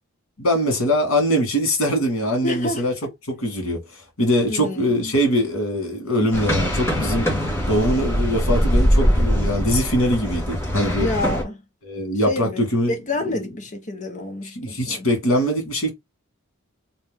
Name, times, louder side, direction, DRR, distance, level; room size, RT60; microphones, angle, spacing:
voice 1, 0.4-2.9 3.3-7.3 7.7-11.1 11.8-12.9 13.3-13.4 14.6-15.9, equal, 70° left, 1.9 m, -22 dB
voice 2, 2.4-2.8 4.5-5.1 11.0-11.6 12.3-15.1, left 2 dB, 35° left, 0.8 m, -28 dB
sound 1, 6.3-11.4, equal, 10° left, 1.5 m, -21 dB
3.3 x 2.8 x 3.5 m
head